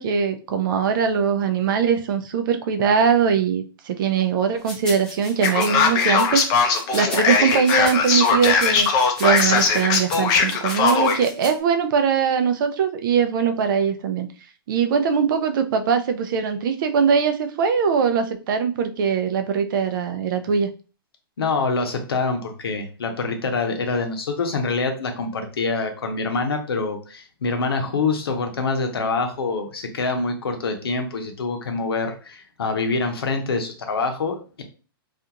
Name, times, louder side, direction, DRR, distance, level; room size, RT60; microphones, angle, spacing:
voice 1, 0.0-8.9 9.2-14.3 14.7-20.7, right 6 dB, 60° right, 7 dB, 0.5 m, -21 dB
sound 1, 4.7-11.5, left 1 dB, 5° left, 0.9 m, -36 dB
Male speech man speaking, 5.4-11.2, left 5 dB, 30° left, 0.5 m, -19 dB
voice 2, 21.4-34.6, left 4 dB, 90° left, 5 dB, 0.7 m, -25 dB
2.4 x 2.4 x 2.8 m, 0.36 s
hypercardioid pair, 130°, 12 cm